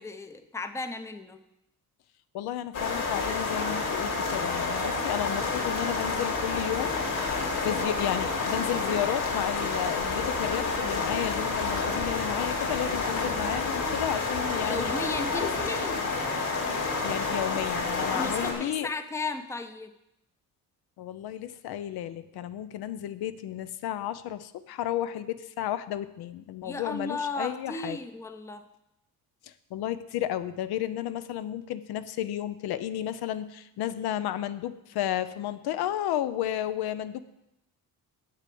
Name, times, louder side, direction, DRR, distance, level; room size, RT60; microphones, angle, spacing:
voice 1, 0.0-1.4 14.6-16.0 18.1-19.9 26.6-28.6, left 3 dB, 10° left, 9 dB, 0.6 m, -35 dB
voice 2, 2.3-7.4 7.6-14.9 15.3-15.5 16.6-18.9 21.0-28.0 29.4-37.2, left 11 dB, 80° left, 13 dB, 0.7 m, -32 dB
sound 1, 2.7-18.5, left 3 dB, 55° left, 2.9 m, -29 dB
8.4 x 6.7 x 7.6 m, 0.84 s
cardioid pair, 140°, 38 cm